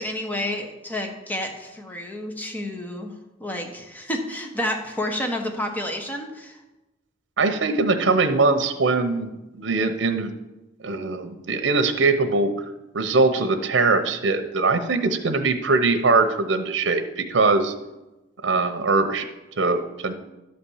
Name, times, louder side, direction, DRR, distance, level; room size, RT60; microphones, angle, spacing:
voice 1, 0.0-3.1 3.4-6.6, left 1 dB, 10° left, 2 dB, 1.2 m, -30 dB
voice 2, 7.4-9.3 9.6-10.3 10.8-12.5 12.9-17.7 18.4-19.3 19.6-20.1, right 3 dB, 80° right, 7 dB, 0.8 m, -21 dB
11.5 x 4.3 x 7.1 m, 1.0 s
head